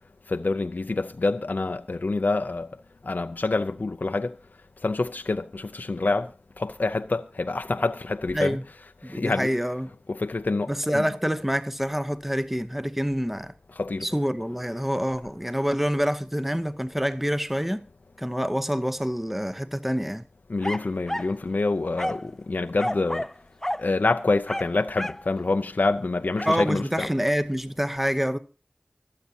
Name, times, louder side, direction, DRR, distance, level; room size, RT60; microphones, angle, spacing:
voice 1, 0.3-2.7 3.0-4.4 4.8-6.3 6.6-8.6 9.0-9.5 10.1-11.0 13.7-14.1 20.5-23.3 23.8-27.1, left 3 dB, 75° left, 0.5 m, -26 dB
voice 2, 9.0-9.9 10.7-13.5 14.0-17.8 18.2-20.2 26.4-28.4, equal, 5° right, 0.9 m, -27 dB
sound 1, 20.6-21.4 22.0-22.3 22.8-23.4 23.6-23.9 24.5-25.3 26.4-26.6, left 1 dB, 10° left, 0.5 m, -31 dB
25.0 x 8.4 x 2.8 m
wide cardioid pair, 50°, 3 cm